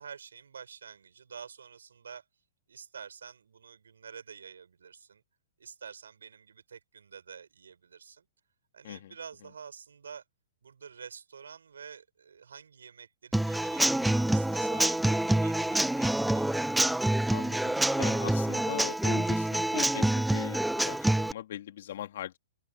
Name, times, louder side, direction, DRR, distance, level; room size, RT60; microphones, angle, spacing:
voice 1, 0.0-2.3 2.7-5.2 5.6-8.3 8.7-10.2 10.6-16.5, right 6 dB, 75° right, 7.1 m, -48 dB
Human voice / Acoustic guitar / Drum, 13.3-21.3, right 1 dB, 5° right, 0.7 m, -27 dB
voice 2, 17.3-22.4, left 12 dB, 60° left, 2.9 m, -40 dB
open air
figure-of-eight pair, 110°, 0 cm